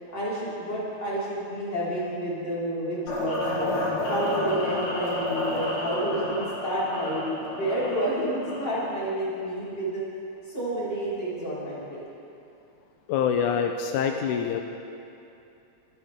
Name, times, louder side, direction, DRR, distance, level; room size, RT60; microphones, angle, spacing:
voice 1, 0.1-3.7 4.1-10.0 10.5-12.0, right 1 dB, 35° left, -9 dB, 5.7 m, -30 dB
sound 1, 3.1-9.0, left 1 dB, 65° left, 4.1 m, -30 dB
voice 2, 13.1-14.6, left 7 dB, 85° left, 4 dB, 2.2 m, -25 dB
26.0 x 14.5 x 3.7 m, 2.7 s
omnidirectional pair, 3.5 m